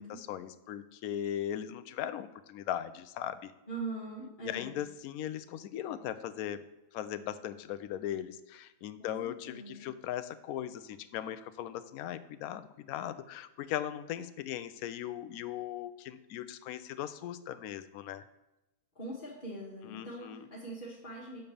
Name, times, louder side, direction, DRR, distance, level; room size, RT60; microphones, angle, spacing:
voice 1, 0.0-3.5 4.4-6.7 6.9-18.2 19.8-20.5, left 11 dB, 70° left, 12 dB, 0.9 m, -38 dB
voice 2, 3.7-4.8 9.0-9.9 18.9-21.4, right 2 dB, 35° left, -5 dB, 1.5 m, -42 dB
7.1 x 5.3 x 6.8 m, 0.96 s
omnidirectional pair, 1.7 m